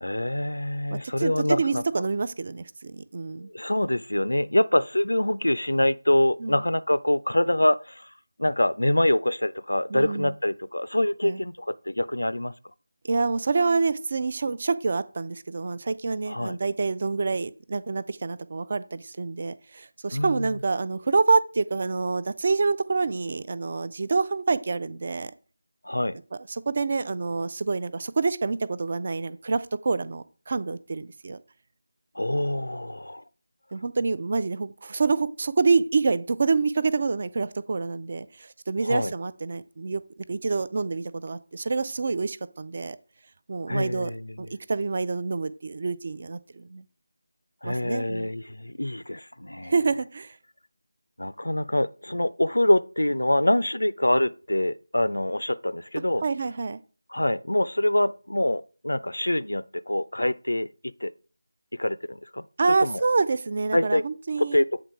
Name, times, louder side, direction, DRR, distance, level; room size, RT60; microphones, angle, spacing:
voice 1, 0.0-1.8 3.5-8.1 8.4-12.5 16.3-16.6 20.1-20.5 25.8-26.2 32.2-33.2 38.8-39.1 43.7-44.3 47.6-49.7 51.2-56.2 57.1-60.7 61.0-61.1 61.7-62.4 62.8-63.0 63.7-64.0 64.4-64.8, left 1 dB, 70° left, 0.3 m, -25 dB
voice 2, 0.9-3.5 6.4-6.6 9.9-10.3 11.2-11.4 13.0-25.3 26.5-31.4 33.7-40.0 40.3-43.0 43.5-44.1 44.4-46.8 47.6-48.3 49.6-50.3 56.2-56.8 62.6-64.6, right 4 dB, 35° right, 0.4 m, -27 dB
7.9 x 3.7 x 4.7 m
figure-of-eight pair, 165°, 0 cm